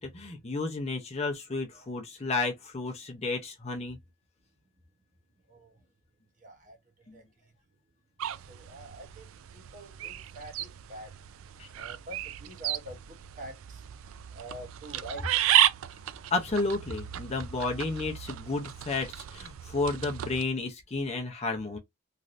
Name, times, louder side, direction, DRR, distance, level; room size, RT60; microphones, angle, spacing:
voice 1, 0.0-4.0 7.1-7.2 11.6-11.7 16.3-21.8, left 3 dB, 30° left, 0.6 m, -32 dB
voice 2, 6.4-6.8 7.1-7.2 8.5-9.2 9.5-11.1 11.8-13.0 13.4-13.5 14.3-15.2, right 1 dB, 35° right, 0.9 m, -44 dB
sound 1, 8.2-20.4, right 12 dB, 65° right, 0.3 m, -33 dB
3.2 x 2.6 x 2.5 m
head